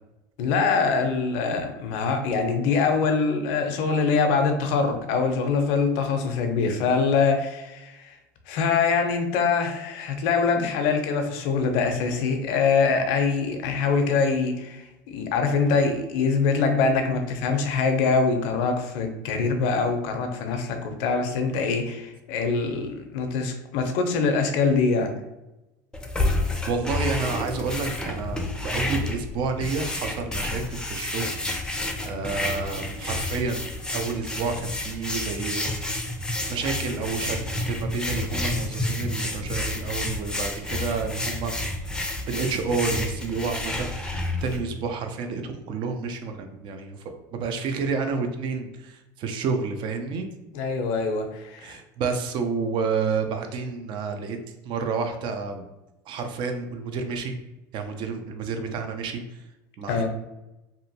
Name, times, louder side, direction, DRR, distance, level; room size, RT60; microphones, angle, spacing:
voice 1, 0.4-8.1 8.5-25.1 50.5-51.8 59.9-60.1, left 4 dB, 65° left, 6 dB, 0.5 m, -24 dB
sound 1, 25.9-44.6, left 2 dB, 10° left, 0.5 m, -30 dB
voice 2, 26.7-31.8 32.0-36.0 36.5-37.4 37.7-41.5 42.3-47.0 47.3-50.3 51.6-54.4 54.6-55.7 56.1-57.3 57.7-59.2 59.8-60.1, right 5 dB, 55° right, 6 dB, 0.5 m, -30 dB
2.7 x 2.5 x 2.7 m, 0.97 s
hypercardioid pair, 85°, 10 cm